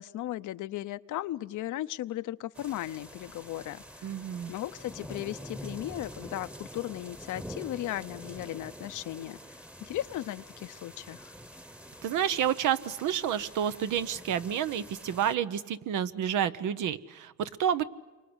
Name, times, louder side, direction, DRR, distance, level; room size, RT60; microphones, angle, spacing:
voice 1, 0.0-4.1 4.5-11.3, left 14 dB, 80° left, 12 dB, 0.8 m, -36 dB
sound 1, 2.6-15.4, equal, 5° right, 1.1 m, -46 dB
voice 2, 4.0-4.5 12.0-17.8, right 9 dB, 85° right, 12 dB, 1.1 m, -29 dB
29.0 x 24.5 x 8.1 m, 1.2 s
cardioid pair, 90°, 30 cm